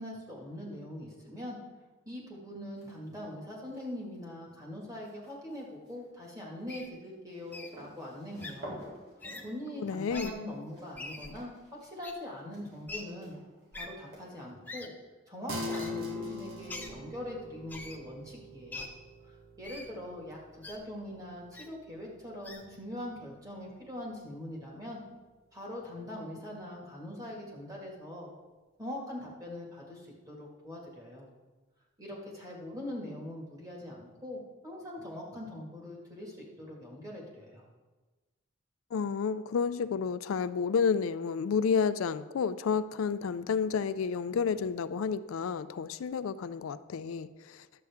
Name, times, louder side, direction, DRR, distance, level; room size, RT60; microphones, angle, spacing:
voice 1, 0.0-1.6 2.1-8.8 9.4-11.5 11.8-13.3 13.7-14.9 15.3-18.9 19.2-25.0 25.5-28.3 28.8-31.3 32.0-37.6, left 1 dB, 15° right, -3 dB, 1.9 m, -42 dB
sound 1, 2.8-3.2 3.6-14.8, right 1 dB, 50° right, 3.6 m, -51 dB
Wild animals, 6.7-6.9 7.5-7.7 8.4-8.5 9.2-9.4 10.1-10.3 10.9-11.3 12.0-12.1 12.9-13.0 13.7-13.9 14.7-14.9 15.7-15.9 16.7-16.9 17.7-18.0 18.7-18.9 19.6-19.9 20.6-20.8 21.5-21.7 22.4-22.6, left 2 dB, 10° left, 0.6 m, -42 dB
voice 2, 9.8-10.3 38.9-47.7, left 6 dB, 85° left, 13 dB, 0.4 m, -30 dB
sound 2, 15.5-25.2, left 2 dB, 85° right, 1.3 m, -44 dB
11.5 x 7.8 x 3.6 m, 1.2 s
head